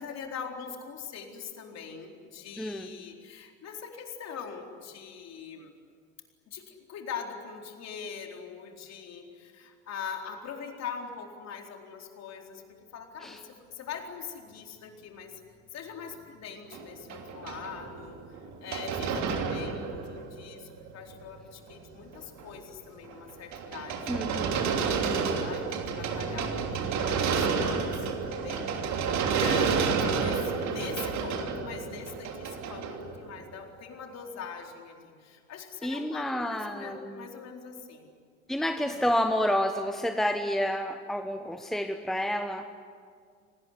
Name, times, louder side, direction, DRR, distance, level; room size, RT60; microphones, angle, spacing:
voice 1, 0.0-5.7 6.5-15.4 15.7-18.2 18.6-38.1 38.9-39.1, left 6 dB, 40° left, 3 dB, 4.2 m, -42 dB
voice 2, 2.6-2.9 13.2-13.4 24.1-24.6 24.9-25.4 35.8-37.3 38.5-42.7, equal, ahead, 7 dB, 1.3 m, -30 dB
sound 1, 13.4-13.5 13.7-28.9, right 3 dB, 60° right, 5.4 m, -49 dB
sound 2, 16.7-20.5 20.9-21.0 21.7-21.8 22.1-22.5 23.1-33.5, right 5 dB, 40° right, 3.2 m, -30 dB
27.5 x 19.5 x 10.0 m, 2.1 s
figure-of-eight pair, 70°, 41 cm